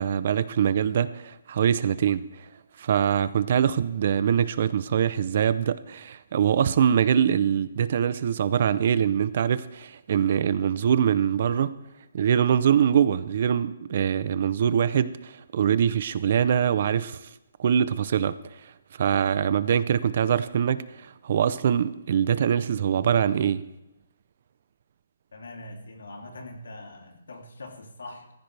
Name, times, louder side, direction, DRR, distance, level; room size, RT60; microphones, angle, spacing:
voice 1, 0.0-2.5 2.8-11.7 12.1-17.3 17.6-18.4 18.6-23.6, right 8 dB, 40° right, 0.6 m, -23 dB
voice 2, 25.3-28.3, left 2 dB, 90° left, 3.0 m, -42 dB
19.0 x 15.0 x 3.4 m
hypercardioid pair, 175°, 0 cm